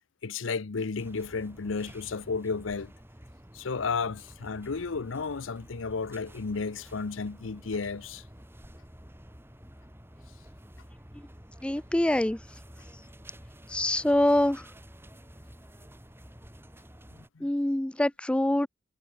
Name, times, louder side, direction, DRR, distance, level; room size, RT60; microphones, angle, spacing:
voice 1, 0.2-2.9 3.5-8.2 17.1-17.5, left 4 dB, 85° left, 0.7 m, -33 dB
sound 1, 1.0-17.3, equal, 10° right, 6.7 m, -50 dB
voice 2, 11.6-12.4 13.7-14.6 17.4-18.7, left 1 dB, 5° left, 0.3 m, -25 dB
head